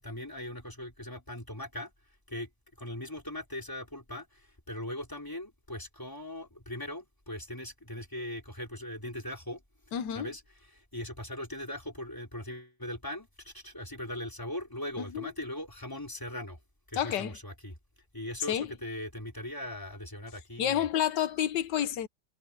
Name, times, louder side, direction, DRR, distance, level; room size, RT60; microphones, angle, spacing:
voice 1, 0.0-1.9 2.3-2.5 2.8-9.6 10.1-10.4 10.7-16.6 16.9-17.8 18.1-20.9, left 1 dB, 10° left, 3.9 m, -40 dB
voice 2, 9.9-10.3 15.0-15.3 16.9-17.4 18.5-18.7 20.6-22.1, left 10 dB, 90° left, 1.6 m, -29 dB
omnidirectional pair, 1.8 m